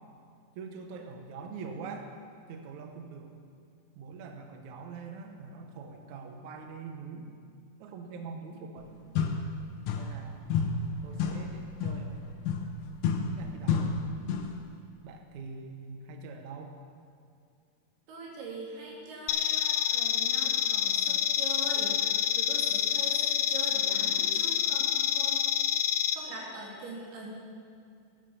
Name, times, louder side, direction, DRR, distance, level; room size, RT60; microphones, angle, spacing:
voice 1, 0.6-2.1 2.5-3.3 4.0-7.4 7.8-8.9 10.0-10.5 11.0-12.4 13.2-13.9 15.0-16.8, right 4 dB, 70° right, 4 dB, 1.9 m, -43 dB
sound 1, 8.8-8.9 9.2-10.3 10.5-14.6, left 5 dB, 75° left, 1.8 m, -31 dB
voice 2, 18.1-25.5 26.1-27.3, right 2 dB, 85° right, -3 dB, 4.3 m, -42 dB
sound 2, 19.3-26.1, left 10 dB, 90° left, 1.8 m, -27 dB
13.0 x 9.0 x 6.9 m, 2.3 s
omnidirectional pair, 4.5 m